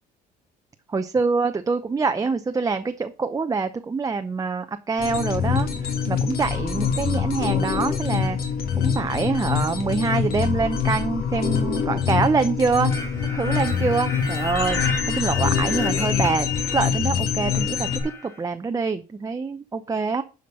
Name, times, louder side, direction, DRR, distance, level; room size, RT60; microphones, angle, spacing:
voice 1, 0.9-8.4 8.8-12.9 13.3-17.9 18.2-20.2, right 4 dB, 20° right, 7 dB, 0.7 m, -25 dB
sound 1, 5.0-18.0, left 7 dB, 65° left, 2.6 m, -25 dB
sound 2, 12.9-17.0 17.3-18.4, left 2 dB, 15° left, 2.1 m, -33 dB
11.0 x 5.2 x 5.4 m, 0.34 s
cardioid pair, 110°, 17 cm